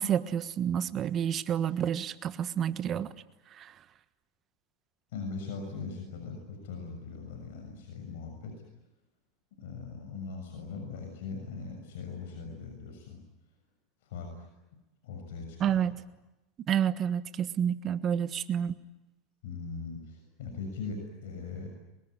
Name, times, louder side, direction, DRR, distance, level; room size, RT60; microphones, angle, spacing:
voice 1, 0.0-3.1 3.5-3.7 15.6-15.9 16.7-18.8, right 9 dB, 35° right, 13 dB, 1.3 m, -29 dB
voice 2, 5.1-8.5 9.6-13.2 14.0-14.5 15.0-15.8 19.4-21.7, left 4 dB, 80° left, 3 dB, 6.8 m, -40 dB
24.5 x 21.5 x 9.9 m, 0.98 s
supercardioid pair, 130°, 0 cm